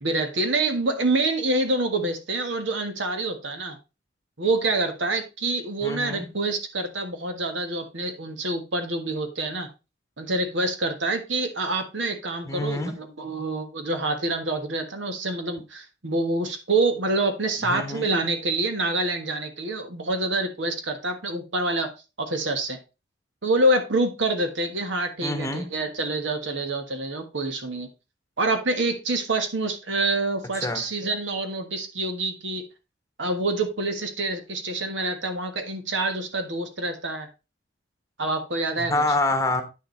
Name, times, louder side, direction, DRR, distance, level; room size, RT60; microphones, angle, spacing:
voice 1, 0.0-3.8 4.4-9.7 10.2-21.9 22.2-22.8 23.4-27.9 28.4-32.6 33.2-37.3 38.2-38.9, right 2 dB, 80° right, 1.5 m, -26 dB
voice 2, 5.8-6.3 12.4-12.9 17.6-18.1 25.2-25.7 30.5-30.8 38.8-39.6, left 2 dB, 15° left, 1.1 m, -27 dB
9.1 x 6.7 x 3.3 m
head